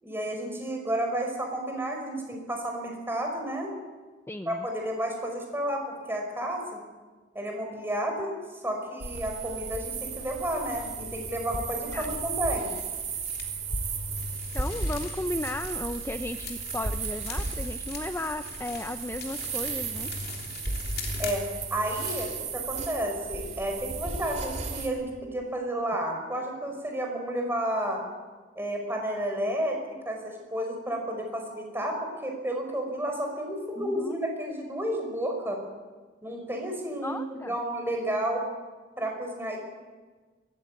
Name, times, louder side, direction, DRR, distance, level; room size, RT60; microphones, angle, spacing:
voice 1, 0.0-3.7 4.5-6.8 7.3-8.3 8.6-12.7 21.2-28.0 28.6-29.8 30.1-35.6 36.2-38.4 39.0-39.6, right 1 dB, 15° right, 2 dB, 5.4 m, -31 dB
voice 2, 4.3-4.7 11.9-12.1 14.5-20.1 33.8-34.1 37.0-37.5, left 1 dB, 15° left, 8 dB, 0.6 m, -35 dB
sound 1, 9.0-24.9, right 4 dB, 40° right, 2.6 m, -34 dB
sound 2, 12.5-13.5 14.2-23.0, left 6 dB, 55° left, 3.3 m, -43 dB
22.0 x 15.0 x 9.2 m, 1.4 s
head